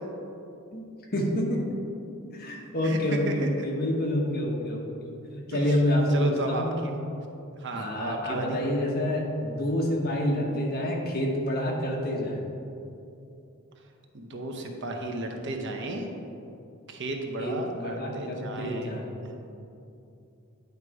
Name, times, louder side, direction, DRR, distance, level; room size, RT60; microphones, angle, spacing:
voice 1, 1.1-1.6 2.3-6.8 7.7-12.4 17.4-19.1, left 1 dB, 45° left, -1 dB, 1.0 m, -28 dB
voice 2, 6.1-6.9 7.6-8.6 14.1-16.1 16.9-18.9, right 1 dB, 60° right, 2 dB, 0.7 m, -33 dB
9.5 x 3.7 x 4.7 m, 2.7 s
head